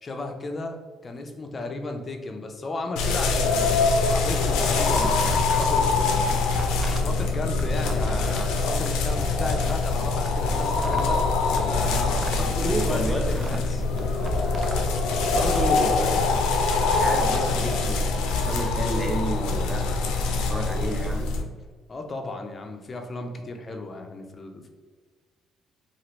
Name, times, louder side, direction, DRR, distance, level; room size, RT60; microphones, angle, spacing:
voice 1, 0.0-6.3 6.8-11.3 11.7-13.8 21.9-24.7, left 2 dB, 35° left, 4 dB, 0.5 m, -34 dB
sound 1, 3.0-21.4, left 3 dB, 90° left, 0.4 m, -24 dB
sound 2, 5.0-5.9 6.1-9.7 10.1-12.5 12.8-14.8, right 2 dB, 35° right, 0.4 m, -35 dB
voice 2, 12.4-13.6 13.9-14.0 15.3-16.5 16.9-21.3, right 1 dB, ahead, 0 dB, 0.7 m, -31 dB
2.9 x 2.4 x 3.0 m, 1.5 s
cardioid pair, 85°, 0 cm